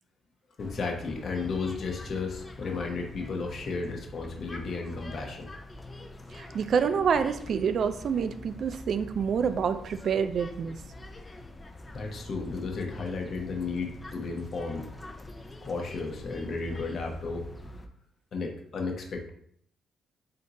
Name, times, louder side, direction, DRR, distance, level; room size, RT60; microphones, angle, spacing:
voice 1, 0.6-5.5 11.9-14.9 15.6-17.8 18.3-19.3, left 4 dB, 50° left, 2 dB, 0.9 m, -34 dB
sound 1, 0.6-17.9, left 1 dB, 20° left, 0.5 m, -45 dB
voice 2, 6.3-10.8, right 6 dB, 60° right, 10 dB, 0.4 m, -27 dB
3.5 x 2.7 x 4.0 m, 0.66 s
cardioid pair, 90°, 0 cm